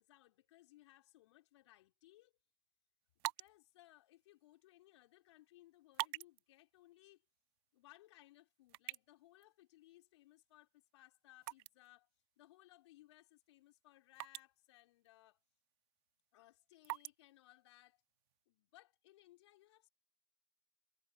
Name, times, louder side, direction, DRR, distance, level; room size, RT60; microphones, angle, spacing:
voice 1, 0.0-2.3 3.2-7.2 7.7-12.1 12.4-15.4 16.3-18.0 18.5-19.9, left 16 dB, 60° left, 3.7 m, -64 dB
sound 1, 3.0-18.4, right 24 dB, 55° right, 1.5 m, -52 dB
figure-of-eight pair, 90°, 16 cm